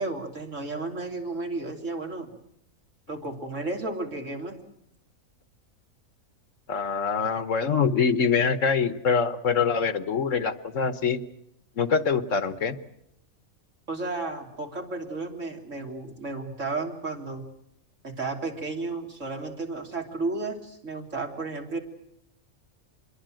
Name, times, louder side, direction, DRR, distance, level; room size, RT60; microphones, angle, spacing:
voice 1, 0.0-2.3 3.1-4.6 13.9-17.5 18.0-21.8, right 3 dB, 65° right, 3 dB, 3.6 m, -33 dB
voice 2, 6.7-11.2 11.8-12.8, left 5 dB, 65° left, 13 dB, 1.5 m, -24 dB
26.0 x 22.0 x 7.7 m, 0.77 s
omnidirectional pair, 1.4 m